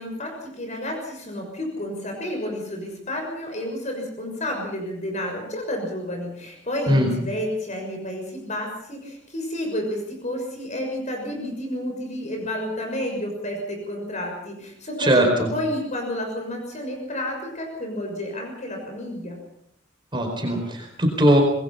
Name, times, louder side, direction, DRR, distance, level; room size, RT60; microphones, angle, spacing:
voice 1, 0.0-15.1 15.4-19.4, left 1 dB, 40° left, 2 dB, 6.3 m, -30 dB
voice 2, 15.0-15.5 20.1-21.4, right 1 dB, 25° right, 1 dB, 4.6 m, -19 dB
27.0 x 21.0 x 5.7 m, 0.72 s
head